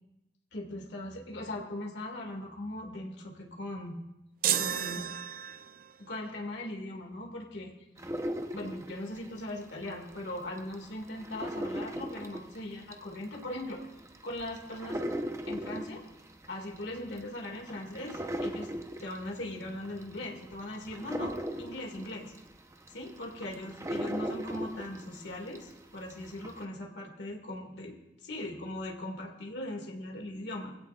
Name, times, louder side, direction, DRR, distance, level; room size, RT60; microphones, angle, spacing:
voice 1, 0.5-4.0 4.5-5.2 6.0-7.7 8.5-13.9 14.2-15.0 15.5-16.0 16.5-18.7 19.0-22.3 22.9-30.7, left 1 dB, 75° left, 1 dB, 2.1 m, -39 dB
sound 1, 4.4-5.9, right 10 dB, 55° right, 0.5 m, -31 dB
sound 2, 8.0-10.2 10.6-25.7 26.1-26.6, equal, 15° right, 0.9 m, -38 dB
21.5 x 16.0 x 2.5 m, 0.94 s
head